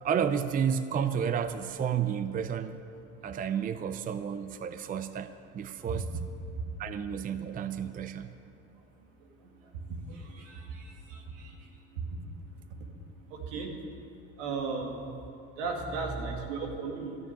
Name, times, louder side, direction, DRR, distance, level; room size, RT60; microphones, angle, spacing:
voice 1, 0.0-2.8 3.2-5.3 5.5-6.1 6.8-8.3, right 8 dB, 25° right, 11 dB, 0.5 m, -31 dB
voice 2, 14.4-14.9 15.6-17.2, right 4 dB, 80° right, 2 dB, 2.3 m, -34 dB
13.5 x 6.5 x 9.9 m, 2.7 s
supercardioid pair, 90°, 37 cm